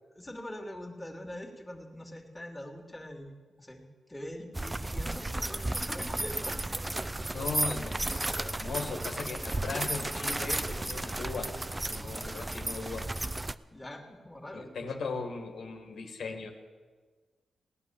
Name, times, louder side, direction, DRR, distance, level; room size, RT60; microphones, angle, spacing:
voice 1, 0.1-6.7 13.7-14.7, left 1 dB, 15° left, 1 dB, 2.4 m, -43 dB
sound 1, 4.5-13.5, right 2 dB, 20° right, 0.5 m, -33 dB
voice 2, 7.3-11.5 11.9-13.1 14.5-16.5, left 4 dB, 80° left, 4 dB, 1.9 m, -38 dB
17.5 x 10.0 x 7.2 m, 1.5 s
cardioid pair, 90°, 0 cm